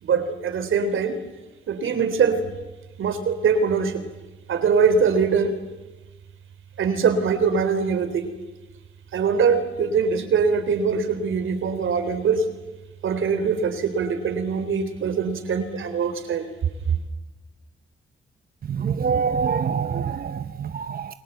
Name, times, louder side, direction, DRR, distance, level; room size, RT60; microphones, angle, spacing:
voice 1, 0.0-1.2 1.7-2.5 3.0-4.1 4.5-5.6 6.8-8.3 9.1-12.5 13.0-16.5 16.9-17.0, right 5 dB, 80° right, 9 dB, 3.6 m, -22 dB
voice 2, 18.8-21.1, right 6 dB, 50° right, 11 dB, 0.9 m, -25 dB
29.0 x 23.0 x 8.1 m, 1.1 s
wide cardioid pair, 115°, 20 cm